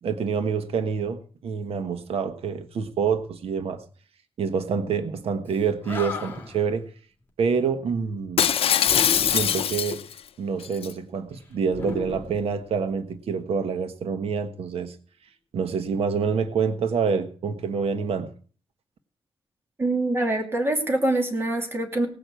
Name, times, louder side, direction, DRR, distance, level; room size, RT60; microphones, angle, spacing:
voice 1, 0.0-3.8 4.4-6.9 7.4-8.5 9.2-10.0 10.4-15.0 15.5-18.3, right 6 dB, 85° right, 9 dB, 1.3 m, -27 dB
Animal, 5.5-5.6 5.8-6.7 8.8-9.7 11.7-13.0, left 3 dB, 20° left, 3.1 m, -35 dB
Shatter, 8.4-10.2 10.6-10.9, left 9 dB, 80° left, 0.6 m, -22 dB
voice 2, 19.8-22.1, right 2 dB, 25° right, 3 dB, 2.7 m, -24 dB
18.0 x 6.1 x 8.3 m, 0.43 s
wide cardioid pair, 150°, 10 cm